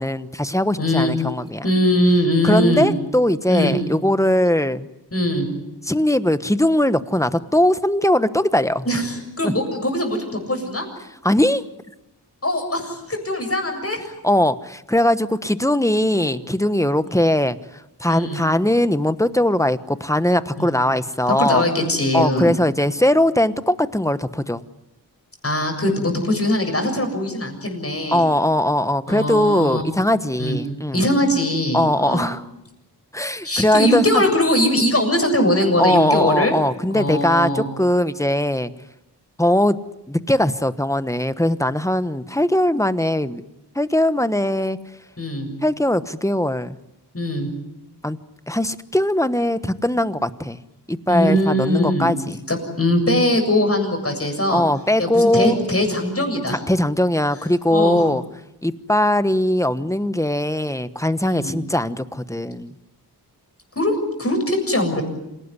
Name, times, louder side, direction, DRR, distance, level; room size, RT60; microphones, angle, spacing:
voice 1, 0.0-1.7 2.4-4.9 5.8-8.9 9.4-9.5 11.2-11.6 14.2-21.6 22.1-24.6 28.1-31.1 31.7-32.5 33.1-34.2 35.8-38.7 39.4-39.8 40.1-43.4 43.7-44.8 45.6-46.8 48.0-48.2 48.5-50.6 50.9-52.4 54.5-55.6 56.5-58.2 58.6-62.7, left 1 dB, 5° left, 13 dB, 1.1 m, -20 dB
voice 2, 0.8-1.1 1.6-2.9 3.5-3.8 5.1-5.5 8.9-10.9 12.4-14.0 16.1-16.4 17.0-17.1 18.1-18.4 20.6-20.7 21.4-22.5 25.4-28.2 29.1-29.8 30.4-30.6 30.9-32.3 33.4-36.5 36.9-37.6 45.2-45.5 47.1-47.5 51.1-52.1 52.5-54.6 55.0-56.6 57.7-58.1 61.2-61.5 63.8-65.0, left 1 dB, 35° left, 4 dB, 7.2 m, -21 dB
27.5 x 18.0 x 9.9 m, 0.92 s
wide cardioid pair, 80°, 41 cm